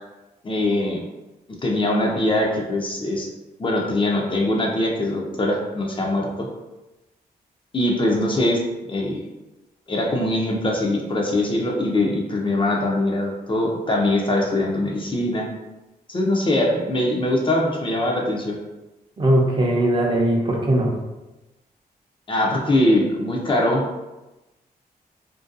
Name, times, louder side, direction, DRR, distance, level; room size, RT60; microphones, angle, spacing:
voice 1, 0.4-1.0 1.6-3.3 3.6-6.5 7.7-8.6 8.9-9.2 9.9-15.5 16.1-18.5 22.3-23.8, left 1 dB, 30° left, -1 dB, 0.5 m, -22 dB
voice 2, 19.2-20.9, right 1 dB, 30° right, -1 dB, 0.5 m, -19 dB
2.5 x 2.2 x 2.5 m, 1.0 s
cardioid pair, 80°, 17 cm